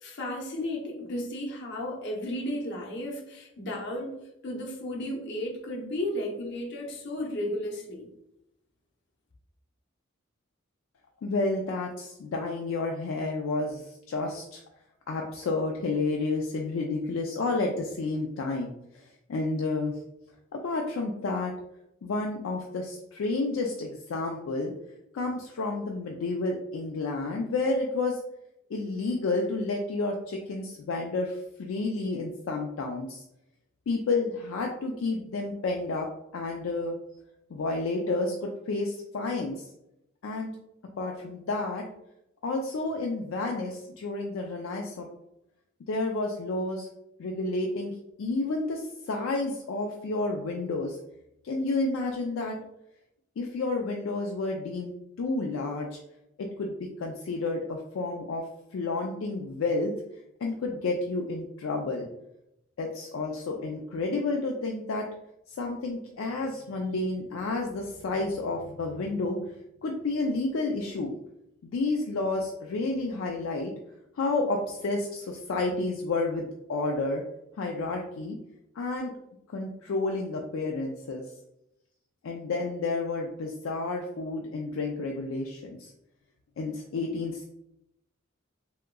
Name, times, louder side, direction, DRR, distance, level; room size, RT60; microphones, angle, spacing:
voice 1, 0.0-8.1, left 1 dB, 60° left, -1 dB, 0.8 m, -34 dB
voice 2, 11.2-14.6 15.1-20.0 20.5-21.5 22.0-24.7 25.1-28.2 28.7-33.2 33.9-37.0 37.5-39.6 40.2-40.5 41.0-41.9 42.4-45.1 45.9-46.9 47.2-51.0 51.4-52.6 53.4-54.9 55.2-56.0 56.4-58.4 58.7-59.9 60.4-62.1 62.8-65.1 65.5-69.4 69.8-71.2 71.6-73.7 74.2-77.2 77.6-78.4 78.8-79.1 79.5-81.2 82.2-85.9 86.6-87.4, left 3 dB, 75° left, 0 dB, 0.4 m, -30 dB
3.5 x 2.8 x 2.2 m, 0.83 s
head